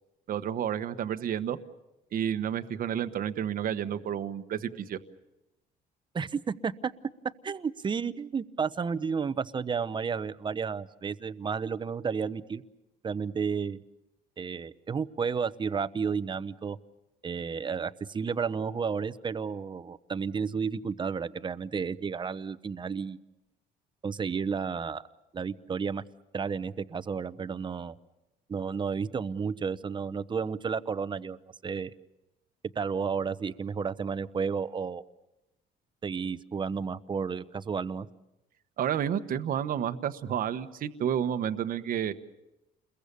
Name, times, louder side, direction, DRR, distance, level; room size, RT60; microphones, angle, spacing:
voice 1, 0.3-1.6 2.1-5.0 38.8-42.1, right 9 dB, 55° right, 10 dB, 1.2 m, -30 dB
voice 2, 6.1-6.9 7.4-12.6 13.0-13.8 14.4-16.8 17.2-23.2 24.0-25.0 25.3-26.0 26.3-28.0 28.5-31.4 31.6-31.9 32.7-35.0 36.0-38.1, right 6 dB, 30° right, 14 dB, 0.9 m, -32 dB
29.5 x 22.0 x 6.9 m, 0.93 s
cardioid pair, 110°, 17 cm